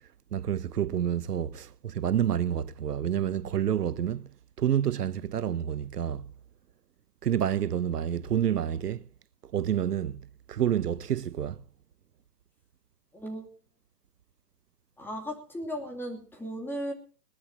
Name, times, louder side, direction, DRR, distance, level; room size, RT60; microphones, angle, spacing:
voice 1, 0.3-4.3 4.6-6.3 7.2-9.0 9.4-10.2 10.5-11.6, right 9 dB, 70° right, 0.8 m, -28 dB
voice 2, 13.1-13.5 15.0-16.9, equal, 5° left, 2.7 m, -36 dB
21.0 x 19.0 x 2.8 m
hypercardioid pair, 135°, 49 cm